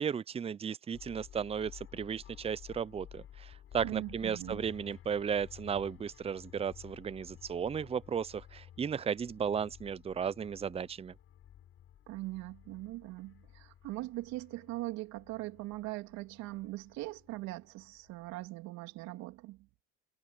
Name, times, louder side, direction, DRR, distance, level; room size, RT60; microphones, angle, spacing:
voice 1, 0.0-11.1, right 7 dB, 20° right, 0.7 m, -35 dB
sound 1, 0.9-18.5, left 10 dB, 45° left, 7.8 m, -54 dB
voice 2, 3.8-4.6 12.1-19.7, right 19 dB, 65° right, 3.3 m, -41 dB
supercardioid pair, 95°, 30 cm